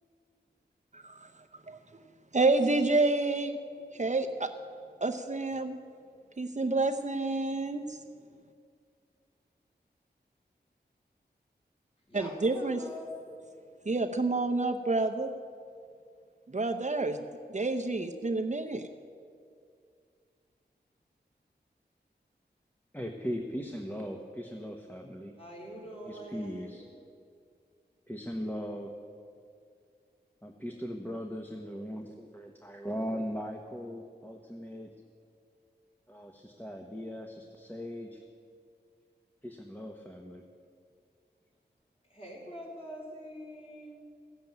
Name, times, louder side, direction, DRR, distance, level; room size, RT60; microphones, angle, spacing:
voice 1, 2.3-3.6 3.9-4.5 5.0-5.8 6.4-8.0 12.1-12.8 13.9-15.3 16.5-17.2 17.5-18.9, right 3 dB, 40° right, 5 dB, 0.7 m, -28 dB
voice 2, 12.1-13.1 25.4-26.7 42.1-44.0, equal, 30° left, -3 dB, 4.4 m, -44 dB
voice 3, 22.9-25.4 26.0-26.8 28.1-28.9 30.4-34.9 36.1-38.2 39.4-40.4, equal, 10° left, 1 dB, 1.1 m, -39 dB
15.0 x 7.8 x 9.2 m, 2.3 s
wide cardioid pair, 60°, 18 cm